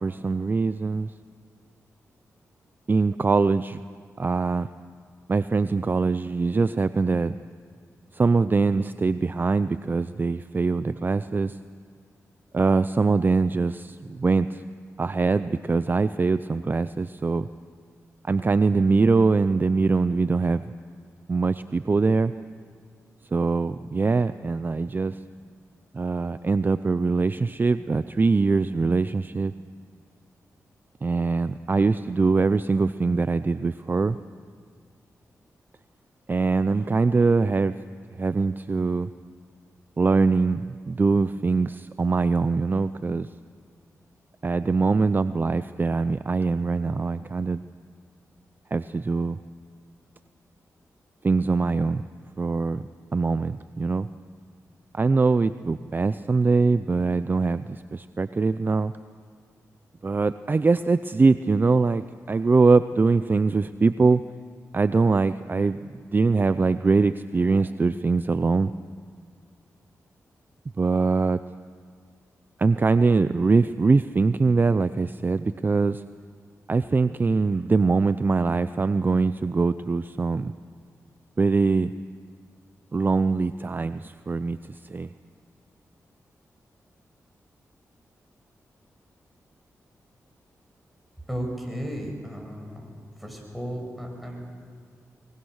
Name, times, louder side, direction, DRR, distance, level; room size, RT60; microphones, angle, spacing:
voice 1, 0.0-1.1 2.9-3.8 4.2-4.7 5.3-7.4 8.1-11.6 12.5-14.6 15.0-17.5 18.3-20.6 21.3-22.3 23.3-25.2 25.9-29.5 31.0-34.2 36.3-37.7 38.2-39.1 40.0-40.6 40.9-43.3 44.4-47.6 48.7-49.4 51.2-52.0 52.4-52.8 53.1-54.1 54.9-58.9 60.0-64.2 64.7-68.7 70.8-71.4 72.6-76.0 76.7-80.5 81.4-81.9 82.9-85.1, right 4 dB, 35° right, 13 dB, 0.5 m, -23 dB
voice 2, 91.3-92.8 93.2-94.4, equal, ahead, 0 dB, 6.5 m, -34 dB
22.5 x 22.0 x 6.4 m, 2.1 s
cardioid pair, 65°, 6 cm